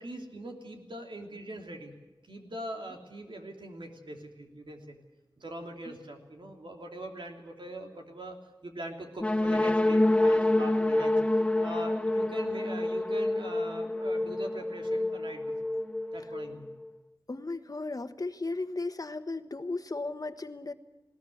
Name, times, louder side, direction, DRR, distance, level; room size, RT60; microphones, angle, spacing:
voice 1, 0.0-2.0 2.3-5.0 5.4-11.2 11.6-15.7 16.1-16.7, right 1 dB, 90° right, 2 dB, 3.1 m, -42 dB
sound 1, 9.2-16.9, left 1 dB, 15° left, 0.7 m, -27 dB
voice 2, 17.3-20.7, left 3 dB, 50° left, 9 dB, 1.2 m, -35 dB
20.0 x 18.5 x 8.0 m, 1.1 s
wide cardioid pair, 65°, 8 cm